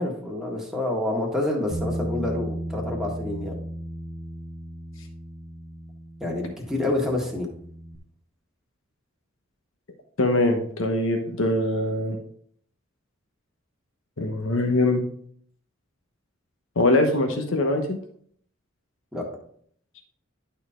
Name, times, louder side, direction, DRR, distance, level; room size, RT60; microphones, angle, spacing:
voice 1, 0.0-3.5 6.2-7.5 19.1-19.2, left 2 dB, ahead, -2 dB, 1.7 m, -28 dB
Bass guitar, 1.7-8.0, right 1 dB, 25° right, 0.9 m, -35 dB
voice 2, 10.2-12.2 14.2-15.0 16.8-18.0, left 2 dB, 75° left, 4 dB, 1.0 m, -22 dB
11.0 x 4.4 x 3.7 m, 0.62 s
head